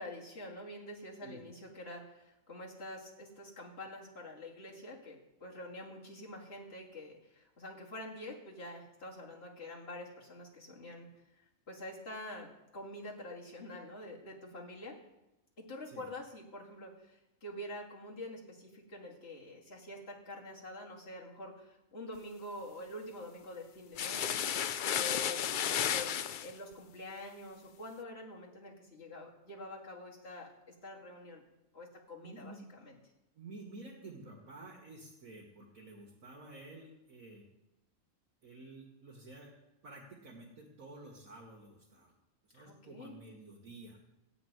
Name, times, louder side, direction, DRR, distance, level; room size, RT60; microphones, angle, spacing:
voice 1, 0.0-11.1 11.3-15.0 15.6-26.1 26.4-31.4 31.7-32.9 42.6-43.2, left 1 dB, 45° left, -3 dB, 2.6 m, -46 dB
sound 1, 24.0-26.5, left 9 dB, 75° left, 0.4 m, -33 dB
voice 2, 32.2-32.6 33.4-37.5 38.4-39.5 39.8-42.1 42.4-44.0, right 2 dB, 80° right, -3 dB, 2.1 m, -51 dB
14.5 x 5.1 x 9.2 m, 0.94 s
omnidirectional pair, 1.4 m